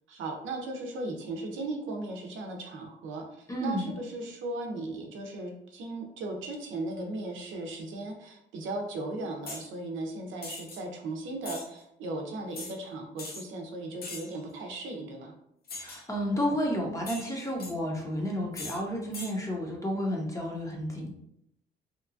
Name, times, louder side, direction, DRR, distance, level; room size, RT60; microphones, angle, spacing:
voice 1, 0.1-15.3, right 2 dB, 80° right, 2 dB, 0.6 m, -37 dB
voice 2, 3.5-3.9 15.7-21.1, equal, 15° left, 0 dB, 0.7 m, -31 dB
sound 1, 9.4-9.7 10.4-10.8 11.4-11.7 12.5-12.7 13.2-13.4 14.0-14.4 15.7-16.0 17.0-17.7 18.5-18.8 19.1-19.3, left 3 dB, 50° left, 0.6 m, -41 dB
2.8 x 2.3 x 2.5 m, 0.75 s
cardioid pair, 90°, 20 cm